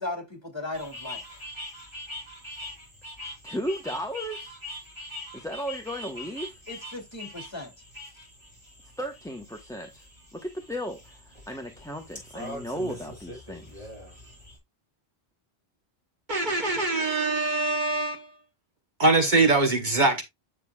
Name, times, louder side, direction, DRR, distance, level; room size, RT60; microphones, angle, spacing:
voice 1, 0.0-1.4 6.7-7.7, left 2 dB, 25° left, 2.8 m, -36 dB
sound 1, 0.7-14.6, left 1 dB, 25° right, 6.2 m, -43 dB
voice 2, 3.4-4.6 5.3-6.6 9.0-10.1 10.3-13.9, equal, 5° left, 0.9 m, -35 dB
voice 3, 16.3-18.3 19.0-20.2, right 2 dB, 50° right, 1.2 m, -23 dB
9.1 x 6.6 x 2.3 m
omnidirectional pair, 1.1 m